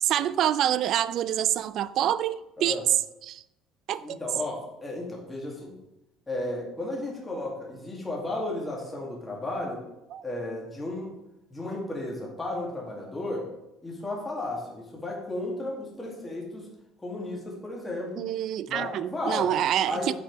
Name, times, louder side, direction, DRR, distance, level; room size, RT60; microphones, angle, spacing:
voice 1, 0.0-2.8 3.2-3.4 3.9-4.2 10.1-10.2 18.2-20.1, right 11 dB, 55° right, 0.3 m, -26 dB
voice 2, 4.0-5.8 6.3-9.8 10.2-11.2 11.5-13.5 13.8-16.7 17.0-18.3 18.7-19.5 19.9-20.1, left 2 dB, 10° left, 2.1 m, -34 dB
8.8 x 4.6 x 4.6 m
cardioid pair, 135°, 0 cm